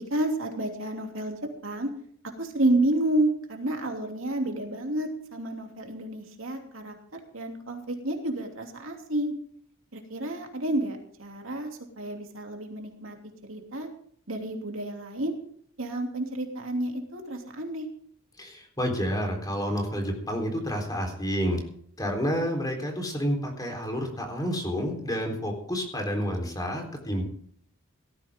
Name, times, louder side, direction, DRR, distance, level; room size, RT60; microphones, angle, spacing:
voice 1, 0.0-1.9 2.4-9.3 9.9-11.7 12.0-13.2 13.5-13.9 14.3-15.4 15.8-17.9, right 1 dB, 65° right, 3 dB, 2.8 m, -30 dB
voice 2, 18.4-21.6 22.0-27.3, equal, 20° left, 3 dB, 3.8 m, -29 dB
18.0 x 14.0 x 3.7 m, 0.62 s
head